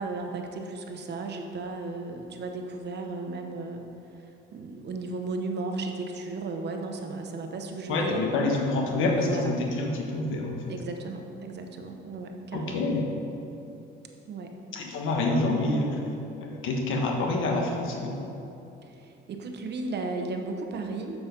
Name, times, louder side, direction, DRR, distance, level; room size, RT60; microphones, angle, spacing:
voice 1, 0.0-3.8 4.2-8.3 9.1-9.5 10.7-12.8 14.3-14.5 18.8-21.2, right 3 dB, 60° right, 4 dB, 1.0 m, -35 dB
voice 2, 7.9-10.6 12.5-13.1 14.7-16.0 16.4-18.2, left 2 dB, 85° left, 1 dB, 1.3 m, -27 dB
7.0 x 7.0 x 5.3 m, 2.9 s
cardioid pair, 90°, 20 cm